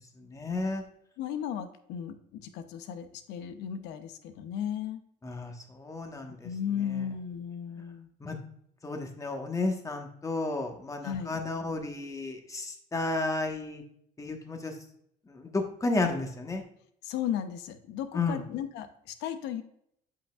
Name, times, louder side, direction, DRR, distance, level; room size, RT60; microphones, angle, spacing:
voice 1, 0.2-0.8 5.2-6.5 8.2-8.4 8.8-13.8 14.2-14.7 15.3-16.6 18.1-18.4, left 3 dB, 20° left, 3 dB, 1.3 m, -32 dB
voice 2, 1.2-5.0 6.4-8.1 11.0-11.4 17.0-19.6, left 9 dB, 90° left, 9 dB, 0.8 m, -35 dB
8.2 x 5.7 x 2.4 m, 0.71 s
cardioid pair, 110°, 17 cm